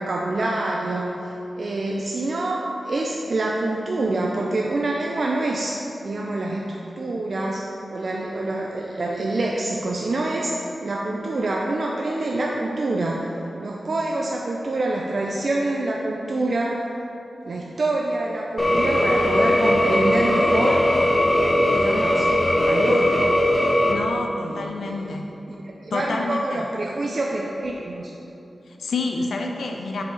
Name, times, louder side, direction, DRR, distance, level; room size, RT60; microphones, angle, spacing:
voice 1, 0.0-13.3 13.6-16.8 17.4-20.8 21.7-22.3 22.6-23.4 24.4-25.2 25.5-28.1, right 2 dB, 45° right, -2 dB, 0.4 m, -26 dB
sound 1, 18.6-23.9, left 1 dB, 15° left, 0.5 m, -19 dB
voice 2, 23.9-25.3 25.9-26.6 28.7-30.0, left 3 dB, 90° left, 2 dB, 0.4 m, -28 dB
7.2 x 4.7 x 3.8 m, 2.9 s
wide cardioid pair, 175°, 0 cm